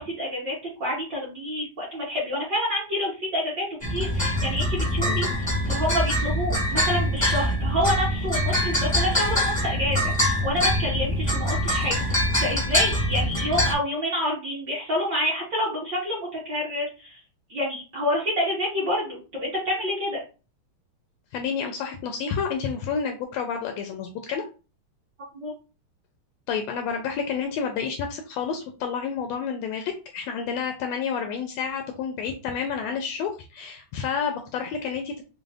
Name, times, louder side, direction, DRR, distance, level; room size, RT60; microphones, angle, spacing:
voice 1, 0.0-17.2 17.5-20.2 25.4-25.5, left 1 dB, 55° right, -6 dB, 1.3 m, -28 dB
sound 1, 3.8-13.7, equal, 25° left, 0.6 m, -24 dB
voice 2, 21.3-24.4 26.5-35.2, left 6 dB, 80° left, 5 dB, 1.5 m, -30 dB
5.1 x 2.0 x 3.4 m, 0.33 s
omnidirectional pair, 3.3 m